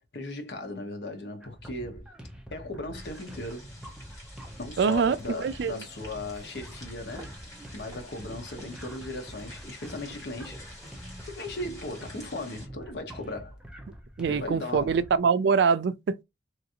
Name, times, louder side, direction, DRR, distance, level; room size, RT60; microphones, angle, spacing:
voice 1, 0.0-2.1 2.5-3.7 4.6-7.4 7.7-10.6 11.3-13.6 14.3-15.0, left 2 dB, 70° left, 0.9 m, -37 dB
sound 1, 1.4-15.2, equal, 5° right, 0.5 m, -46 dB
sound 2, 2.9-12.7, left 1 dB, 20° left, 1.6 m, -49 dB
voice 2, 4.8-5.8 14.2-16.2, right 5 dB, 70° right, 0.3 m, -24 dB
sound 3, 6.2-11.3, right 1 dB, 20° right, 1.1 m, -51 dB
3.1 x 2.6 x 2.8 m
head